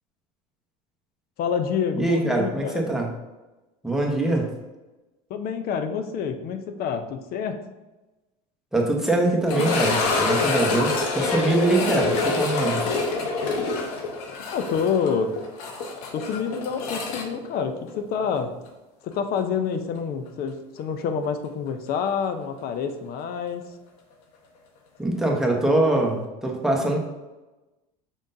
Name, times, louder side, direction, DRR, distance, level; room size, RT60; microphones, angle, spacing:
voice 1, 1.4-2.9 5.3-7.6 14.5-15.3 16.1-18.6 19.0-23.6, left 6 dB, 50° left, 8 dB, 0.6 m, -27 dB
voice 2, 1.9-3.1 3.8-4.5 8.7-12.8 25.0-27.0, right 2 dB, ahead, -1 dB, 1.0 m, -23 dB
sound 1, 9.5-18.4 18.7-18.8 19.4-19.5 22.1-22.2, left 3 dB, 75° left, 0.9 m, -26 dB
5.3 x 3.5 x 2.6 m, 1.1 s
hypercardioid pair, 95°, 21 cm